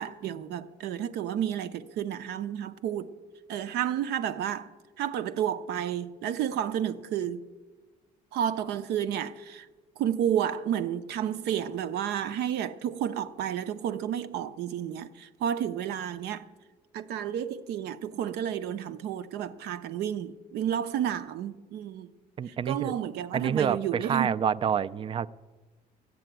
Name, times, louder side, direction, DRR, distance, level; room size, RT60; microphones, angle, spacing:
voice 1, 0.0-3.1 3.5-4.7 5.0-7.4 8.3-9.7 10.0-16.5 16.9-22.1 22.5-24.4, right 10 dB, 75° right, 0.7 m, -31 dB
voice 2, 22.4-22.9 23.3-25.3, right 7 dB, 30° right, 0.4 m, -28 dB
13.0 x 7.8 x 9.1 m
cardioid pair, 110°, 17 cm